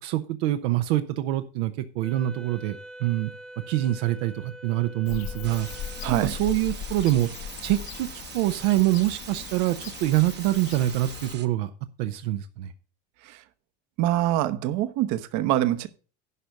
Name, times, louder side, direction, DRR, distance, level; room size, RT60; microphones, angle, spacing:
voice 1, 0.0-3.3 3.7-5.7 6.2-7.3 7.6-11.7 12.0-12.7, right 15 dB, 85° right, 0.8 m, -25 dB
Wind instrument woodwind instrument, 2.0-6.6, right 1 dB, ahead, 0.6 m, -45 dB
Bird / Cricket, 5.1-11.3, left 10 dB, 60° left, 1.0 m, -38 dB
sound 1, 5.4-11.5, right 9 dB, 35° right, 0.8 m, -43 dB
voice 2, 6.0-6.3 13.2-13.4 14.0-15.9, right 14 dB, 60° right, 1.0 m, -25 dB
11.0 x 5.3 x 5.8 m
supercardioid pair, 130°, 32 cm